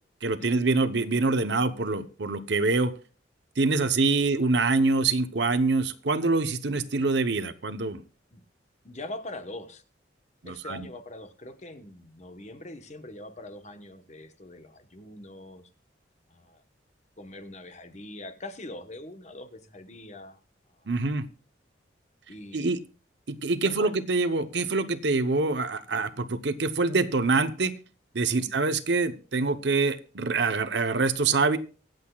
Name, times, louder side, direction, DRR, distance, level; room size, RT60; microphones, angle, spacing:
voice 1, 0.2-2.9 3.6-8.0 10.4-10.9 20.9-21.3 22.5-22.8 23.3-27.7 28.1-31.6, right 3 dB, 65° right, 11 dB, 0.9 m, -25 dB
voice 2, 8.8-9.8 10.4-15.7 16.3-16.6 17.2-20.4 20.8-20.9 22.3-22.7 23.6-23.9 28.3-28.5, left 1 dB, 35° left, 9 dB, 1.1 m, -42 dB
24.0 x 7.9 x 2.3 m, 0.36 s
head